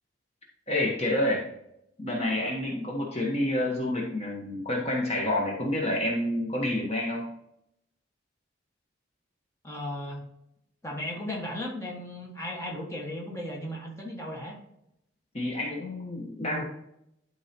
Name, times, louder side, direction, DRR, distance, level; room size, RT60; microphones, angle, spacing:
voice 1, 0.7-1.5 2.0-7.3 15.3-16.6, left 1 dB, 35° left, -2 dB, 1.2 m, -28 dB
voice 2, 9.6-10.2 10.8-14.6, left 1 dB, 15° left, 0 dB, 1.4 m, -36 dB
11.5 x 4.6 x 2.9 m, 0.79 s
head